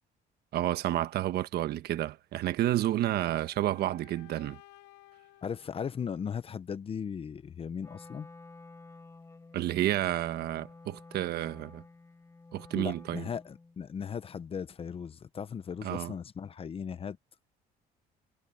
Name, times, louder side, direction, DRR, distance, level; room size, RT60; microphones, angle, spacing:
voice 1, 0.5-4.6 9.5-11.8 12.5-13.2 15.8-16.1, right 13 dB, 70° right, 1.3 m, -30 dB
sound 1, 2.6-6.6, left 16 dB, 90° left, 3.2 m, -58 dB
voice 2, 5.4-8.3 12.7-17.2, left 7 dB, 35° left, 0.9 m, -37 dB
Wind instrument woodwind instrument, 7.8-13.8, left 3 dB, 15° left, 1.9 m, -52 dB
cardioid pair, 110°, 17 cm